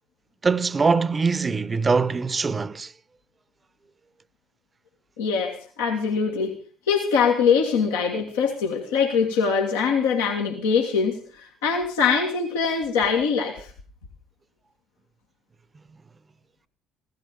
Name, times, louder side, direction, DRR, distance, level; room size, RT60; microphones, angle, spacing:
voice 1, 0.4-2.9, right 4 dB, 30° right, 0.8 m, -22 dB
voice 2, 5.2-6.5 6.9-13.7, left 6 dB, 85° left, 1.9 m, -23 dB
16.5 x 13.5 x 5.3 m
hypercardioid pair, 60°, 0 cm